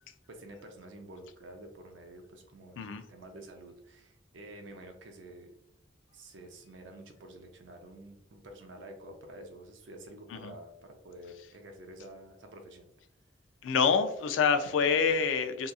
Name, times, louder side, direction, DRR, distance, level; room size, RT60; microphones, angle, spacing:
voice 1, 0.3-5.5 6.1-12.9, right 1 dB, 80° right, 4 dB, 0.5 m, -49 dB
voice 2, 13.6-15.7, left 6 dB, 85° left, 9 dB, 0.3 m, -27 dB
2.8 x 2.3 x 2.3 m, 0.75 s
head